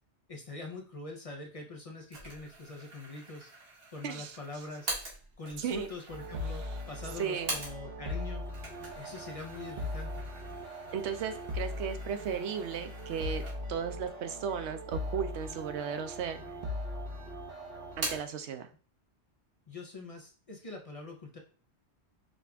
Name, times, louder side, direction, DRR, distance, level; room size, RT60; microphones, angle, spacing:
voice 1, 0.3-3.5 3.9-4.9 5.4-8.4 8.9-10.2 19.7-21.4, left 3 dB, 40° left, 2 dB, 0.6 m, -43 dB
sound 1, 2.1-8.1 8.4-13.9 14.3-14.4 15.2-15.9 16.2-17.0 17.3-18.4, right 2 dB, 60° right, 1.6 m, -44 dB
voice 2, 4.0-4.4 5.6-5.9 7.2-7.5 10.9-13.4 13.7-16.4 18.0-18.7, right 7 dB, 80° right, 8 dB, 0.9 m, -35 dB
sound 2, 6.1-18.2, left 1 dB, 45° right, 1.0 m, -40 dB
5.1 x 2.4 x 3.3 m, 0.41 s
omnidirectional pair, 1.1 m